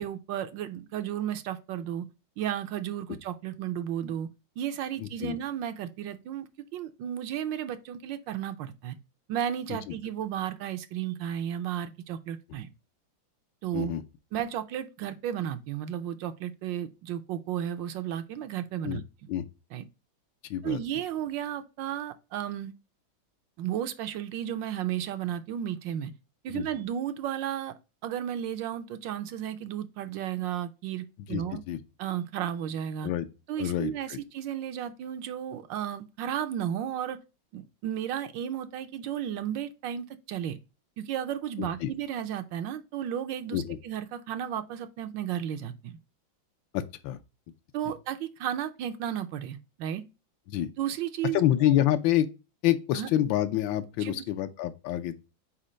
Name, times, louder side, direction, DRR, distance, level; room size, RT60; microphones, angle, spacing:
voice 1, 0.0-2.1 2.4-4.3 4.6-9.0 9.3-12.7 13.6-13.9 14.3-19.0 19.7-19.8 20.6-22.7 23.6-26.1 26.4-27.7 28.0-31.6 32.0-33.1 33.5-37.2 37.5-40.6 41.0-45.9 47.7-50.0 50.8-51.7 52.9-53.1 54.0-54.2, right 10 dB, 75° right, 1.2 m, -33 dB
voice 2, 5.0-5.4 9.7-9.9 13.7-14.0 18.8-19.0 19.3-19.4 20.5-20.8 26.5-26.6 31.3-31.8 33.0-33.3 33.6-34.2 41.6-41.9 43.5-43.8 46.7-47.2 47.8-47.9 50.5-50.7 51.3-52.3 52.6-55.2, left 12 dB, 75° left, 1.3 m, -27 dB
4.5 x 4.3 x 4.9 m
omnidirectional pair, 2.2 m